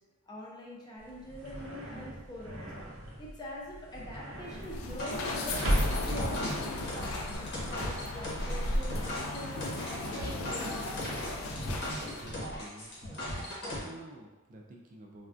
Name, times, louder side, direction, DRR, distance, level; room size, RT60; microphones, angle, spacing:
voice 1, 0.3-2.7 3.2-5.8 6.1-10.9, left 1 dB, 20° left, -4 dB, 0.5 m, -44 dB
sound 1, 1.0-7.4, equal, 80° right, 0.6 m, -36 dB
sound 2, 4.5-12.3, left 2 dB, 75° left, 0.4 m, -36 dB
sound 3, 4.9-13.8, left 1 dB, 55° left, 0.9 m, -38 dB
voice 2, 11.6-15.3, right 1 dB, 40° right, 0 dB, 0.3 m, -50 dB
3.4 x 2.2 x 2.5 m, 1.1 s
head